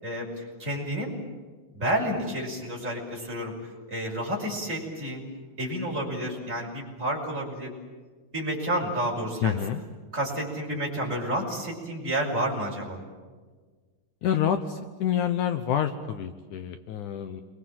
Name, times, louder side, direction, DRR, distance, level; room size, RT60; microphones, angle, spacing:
voice 1, 0.0-1.1 1.7-3.5 3.9-5.2 5.6-7.7 8.3-9.6 10.1-13.0, right 1 dB, 20° right, -2 dB, 6.3 m, -30 dB
voice 2, 9.4-9.8 14.2-17.4, left 9 dB, 70° left, 8 dB, 2.3 m, -27 dB
28.5 x 24.0 x 7.6 m, 1.4 s
omnidirectional pair, 3.9 m